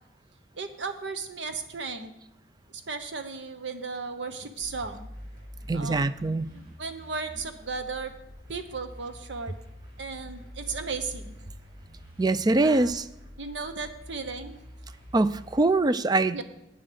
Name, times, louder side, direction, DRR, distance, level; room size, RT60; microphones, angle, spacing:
voice 1, 0.5-2.1 2.7-5.1 5.7-6.1 6.5-8.1 8.5-9.5 10.0-11.4 12.6-13.0 13.4-14.6 16.3-16.4, right 4 dB, 80° right, 8 dB, 1.1 m, -35 dB
sound 1, 4.6-15.6, equal, 55° right, 4.5 m, -46 dB
voice 2, 5.7-6.5 12.2-13.1 15.1-16.4, right 2 dB, 20° right, 14 dB, 0.4 m, -23 dB
8.9 x 7.3 x 6.8 m, 0.85 s
head